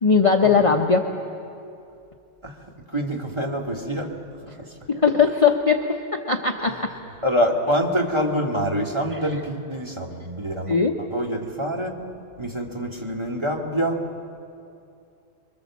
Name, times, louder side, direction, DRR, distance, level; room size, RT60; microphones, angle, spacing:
voice 1, 0.0-1.1 4.9-6.9 10.7-11.0, left 5 dB, 30° left, 2 dB, 0.9 m, -19 dB
voice 2, 2.4-4.2 4.4-4.8 6.6-10.8 11.1-12.1 12.4-14.0, equal, 20° right, 0 dB, 2.2 m, -26 dB
27.5 x 23.5 x 7.3 m, 2.5 s
omnidirectional pair, 1.3 m